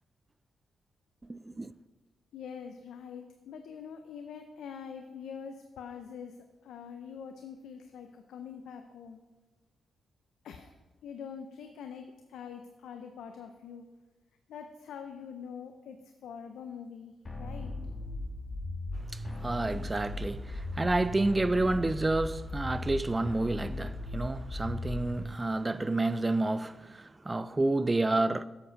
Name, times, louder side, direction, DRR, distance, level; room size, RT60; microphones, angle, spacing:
voice 1, 1.3-1.7 19.1-28.4, right 2 dB, 20° right, 0.3 m, -29 dB
voice 2, 2.3-9.2 10.4-10.7 11.0-13.9 14.5-17.1 17.4-17.7, left 7 dB, 85° left, 0.5 m, -44 dB
sound 1, 17.3-25.3, left 2 dB, 35° left, 1.5 m, -37 dB
7.7 x 7.1 x 5.2 m
cardioid pair, 80°, 0 cm